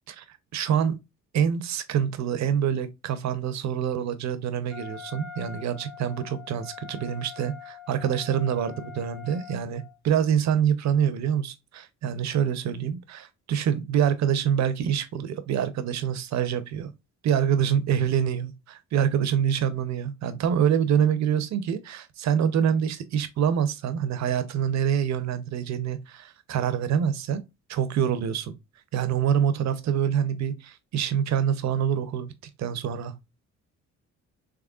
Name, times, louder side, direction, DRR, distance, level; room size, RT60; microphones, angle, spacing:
voice 1, 0.5-0.9 1.3-16.9 17.2-27.4 27.7-28.5 28.9-32.3 32.6-33.1, right 8 dB, 65° right, 0.6 m, -26 dB
Wind instrument woodwind instrument, 4.7-10.0, left 9 dB, 30° left, 1.8 m, -44 dB
3.6 x 3.3 x 2.4 m
cardioid pair, 90°, 30 cm